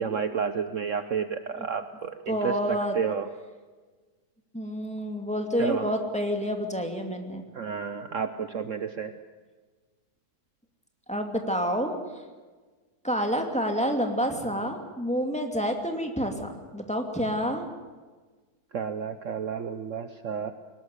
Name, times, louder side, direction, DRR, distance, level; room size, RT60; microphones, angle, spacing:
voice 1, 0.0-3.3 5.6-5.9 7.5-9.1 18.7-20.5, right 6 dB, 55° right, 9 dB, 1.1 m, -31 dB
voice 2, 2.3-3.0 4.5-7.4 11.1-11.9 13.0-17.7, equal, 5° left, 3 dB, 2.4 m, -28 dB
22.0 x 19.5 x 8.2 m, 1.4 s
omnidirectional pair, 1.7 m